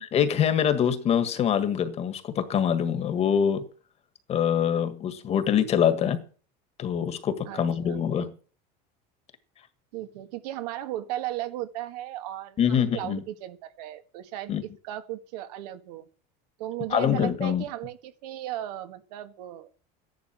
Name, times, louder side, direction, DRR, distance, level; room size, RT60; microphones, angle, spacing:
voice 1, 0.1-3.6 4.3-6.2 6.8-8.3 12.6-13.2 14.5-14.6 16.9-17.6, left 8 dB, 30° left, 1.7 m, -24 dB
voice 2, 7.5-8.0 9.9-16.1 16.6-19.7, right 13 dB, 80° right, 1.7 m, -36 dB
13.5 x 11.0 x 6.0 m
supercardioid pair, 150°, 20 cm